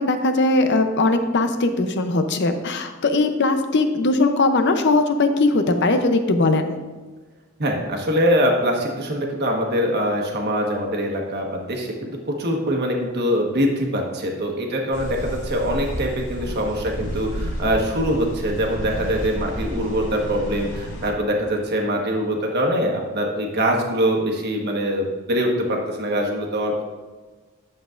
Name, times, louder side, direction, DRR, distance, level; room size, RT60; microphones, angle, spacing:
voice 1, 0.0-6.8, left 2 dB, 55° left, 7 dB, 0.7 m, -20 dB
voice 2, 7.6-26.8, equal, 50° right, 1 dB, 1.3 m, -23 dB
sound 1, 14.9-21.1, equal, 70° left, 2.0 m, -31 dB
10.5 x 7.2 x 2.5 m, 1.3 s
head